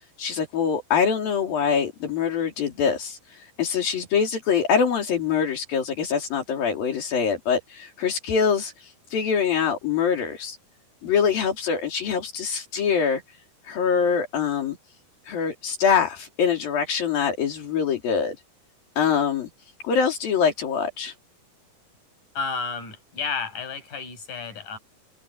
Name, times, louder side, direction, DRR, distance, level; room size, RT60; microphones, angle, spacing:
voice 1, 0.0-10.6 11.0-13.2 13.6-14.8 15.2-18.4 19.0-19.5 19.8-21.1, left 6 dB, 70° left, 5.2 m, -24 dB
voice 2, 22.4-24.8, left 5 dB, 55° left, 8.9 m, -31 dB
omnidirectional pair, 4.2 m